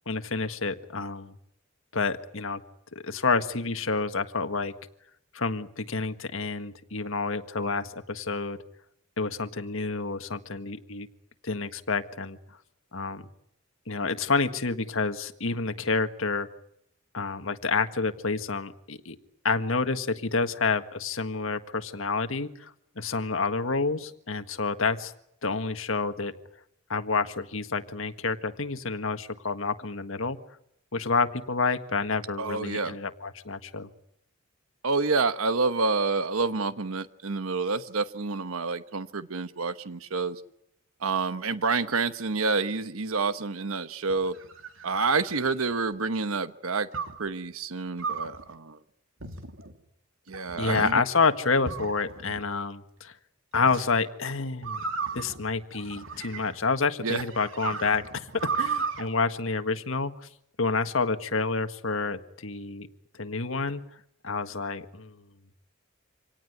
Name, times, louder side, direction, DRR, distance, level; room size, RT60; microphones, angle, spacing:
voice 1, 0.1-1.3 1.9-2.6 2.9-4.7 5.3-8.6 9.2-11.1 11.4-12.4 12.9-13.3 13.9-16.5 17.1-19.2 19.4-22.7 23.0-25.1 25.4-26.3 26.9-30.4 30.9-33.9 50.6-53.1 53.5-54.9 55.1-58.3 58.6-60.3 60.6-62.9 63.2-63.8 64.2-65.1, left 4 dB, 75° left, 9 dB, 1.7 m, -28 dB
voice 2, 32.4-33.0 34.8-40.4 41.0-44.4 44.8-46.9 47.1-48.8 50.3-51.0 57.0-57.2, right 4 dB, 85° right, 12 dB, 1.1 m, -28 dB
sound 1, 44.1-45.9 46.9-47.3 48.0-48.4 49.2-49.7 50.3-50.9 51.6-52.4 53.5-53.8 54.6-56.7 57.2-59.0, right 5 dB, 70° right, 2.9 m, -35 dB
26.5 x 18.5 x 9.5 m, 0.77 s
head